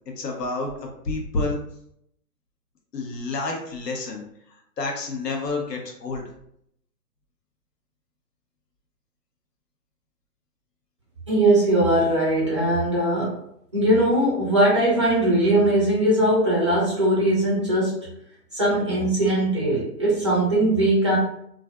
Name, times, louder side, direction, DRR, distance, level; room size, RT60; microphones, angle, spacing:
voice 1, 0.2-0.7 1.0-1.6 2.9-4.2 4.8-6.2, left 3 dB, 80° left, 1 dB, 0.9 m, -28 dB
voice 2, 11.3-13.4 13.7-18.1 18.5-21.2, right 1 dB, 20° right, -7 dB, 0.4 m, -20 dB
2.4 x 2.3 x 2.2 m, 0.72 s
hypercardioid pair, 150°, 48 cm